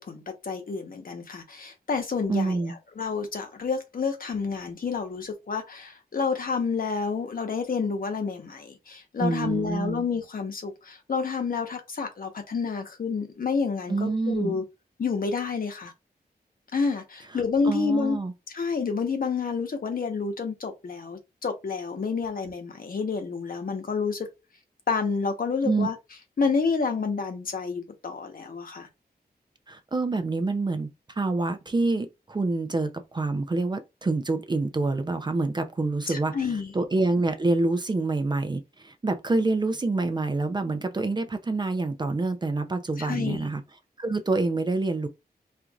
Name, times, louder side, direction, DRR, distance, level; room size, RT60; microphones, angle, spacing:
voice 1, 0.0-14.6 15.0-15.9 16.7-18.2 18.5-24.3 24.9-26.0 26.4-28.9 36.1-36.7 43.0-43.5, left 5 dB, 60° left, 0.9 m, -29 dB
voice 2, 2.3-2.8 9.2-10.0 13.9-14.5 17.6-18.3 25.6-25.9 29.7-30.9 31.2-36.4 36.7-43.6 44.0-45.1, right 3 dB, 25° right, 0.4 m, -26 dB
4.3 x 2.5 x 2.3 m
wide cardioid pair, 145°, 17 cm